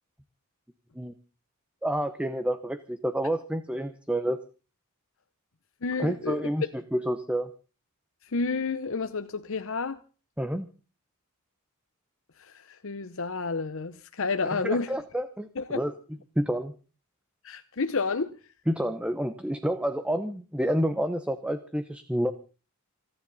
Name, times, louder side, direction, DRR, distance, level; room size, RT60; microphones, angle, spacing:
voice 1, 1.8-4.4 6.0-6.6 6.9-7.5 10.4-10.7 14.5-15.9 16.4-16.7 18.7-22.3, equal, 5° right, 0.8 m, -29 dB
voice 2, 5.8-6.4 8.2-10.0 12.4-14.9 15.6-15.8 17.4-18.4, left 4 dB, 60° left, 0.8 m, -30 dB
29.0 x 10.0 x 4.0 m
head